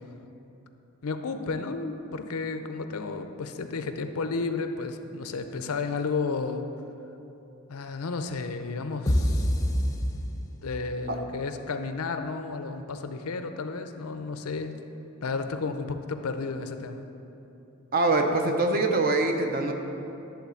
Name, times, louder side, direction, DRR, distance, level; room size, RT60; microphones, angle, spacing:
voice 1, 1.0-6.6 7.7-9.5 10.6-14.8 15.2-17.1, left 4 dB, 90° left, 8 dB, 0.6 m, -32 dB
sound 1, 9.1-10.9, equal, 15° left, 0.6 m, -26 dB
voice 2, 17.9-19.7, right 2 dB, 40° right, 4 dB, 0.7 m, -24 dB
11.0 x 3.9 x 6.9 m, 3.0 s
head